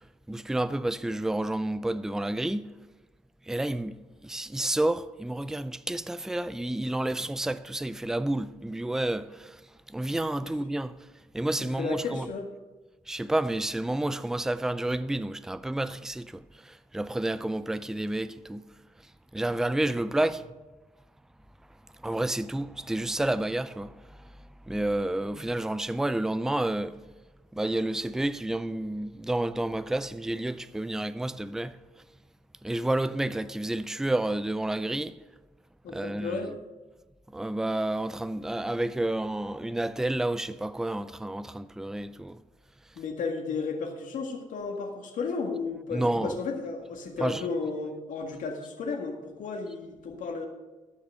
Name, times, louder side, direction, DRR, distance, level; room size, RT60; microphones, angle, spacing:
voice 1, 0.3-2.7 3.5-4.0 4.2-9.6 9.9-11.0 11.3-12.3 13.1-18.6 19.3-20.4 22.0-23.9 24.7-27.0 27.5-31.8 32.6-35.2 35.9-36.4 37.3-42.4 45.9-46.4 47.2-47.4, right 1 dB, 5° right, 0.3 m, -30 dB
voice 2, 11.6-12.5 35.8-36.6 43.0-50.5, left 4 dB, 85° left, 1.9 m, -33 dB
13.5 x 6.0 x 6.3 m
cardioid pair, 130°, 13 cm